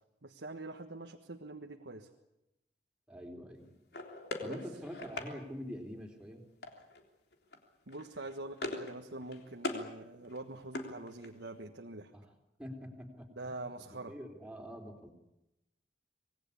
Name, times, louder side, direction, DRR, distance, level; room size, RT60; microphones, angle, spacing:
voice 1, 0.2-2.1 4.4-4.6 7.9-12.1 13.4-14.1, right 2 dB, 80° right, 3 dB, 1.5 m, -45 dB
voice 2, 3.1-3.7 4.4-6.4 12.1-12.3 12.6-13.7 14.1-15.1, equal, 5° right, 1 dB, 3.6 m, -45 dB
sound 1, 3.9-5.3 6.6-7.0 7.3-7.6 7.9-9.0 9.2-9.9 10.2-11.5, left 2 dB, 70° left, 3.5 m, -41 dB
26.5 x 20.5 x 8.5 m, 0.90 s
head